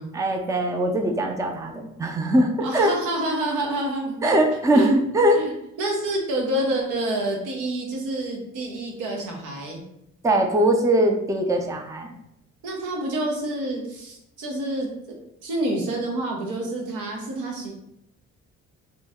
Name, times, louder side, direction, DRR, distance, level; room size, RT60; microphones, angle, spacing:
voice 1, 0.1-2.9 4.2-5.4 10.2-12.1, right 1 dB, 10° right, 4 dB, 0.4 m, -21 dB
voice 2, 2.6-4.3 4.7-4.9 5.3-5.5 5.8-9.8 12.6-15.2 15.4-17.7, right 1 dB, 90° right, 0 dB, 0.9 m, -28 dB
3.0 x 2.6 x 3.5 m, 0.81 s
cardioid pair, 90°, 30 cm